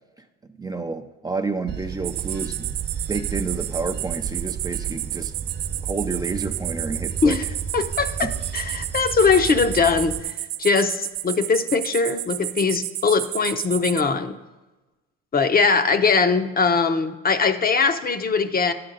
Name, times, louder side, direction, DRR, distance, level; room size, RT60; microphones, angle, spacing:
voice 1, 0.6-2.7 3.1-5.3 5.8-7.4 8.2-8.3, right 4 dB, 15° right, 5 dB, 0.4 m, -29 dB
Bell / Train, 1.7-10.2, right 6 dB, 35° right, 0.9 m, -33 dB
sound 1, 2.0-14.0, right 15 dB, 75° right, 0.5 m, -31 dB
voice 2, 7.7-14.4 15.3-18.7, left 4 dB, 30° left, 9 dB, 0.7 m, -21 dB
10.5 x 7.7 x 3.9 m, 1.1 s
supercardioid pair, 75°, 29 cm